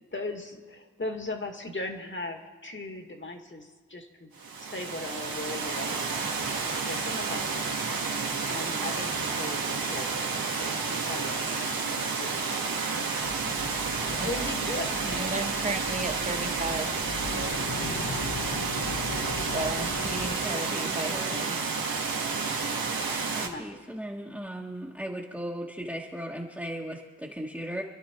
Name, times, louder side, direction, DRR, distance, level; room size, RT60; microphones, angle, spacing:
voice 1, 0.0-4.3 4.6-6.2 6.6-7.8 8.5-11.8 12.2-13.2 14.2-15.5 23.4-23.7, left 2 dB, 35° left, 4 dB, 2.1 m, -38 dB
Water, 4.4-23.5, right 4 dB, 90° right, 1.8 m, -30 dB
sound 1, 13.2-20.3, left 3 dB, 50° left, 1.5 m, -38 dB
voice 2, 15.1-17.0 19.3-21.6, right 2 dB, 20° right, 4 dB, 1.5 m, -34 dB
voice 3, 20.4-21.5 23.3-27.8, right 1 dB, 5° right, -4 dB, 1.5 m, -37 dB
27.5 x 11.5 x 4.5 m, 1.4 s
wide cardioid pair, 80°, 34 cm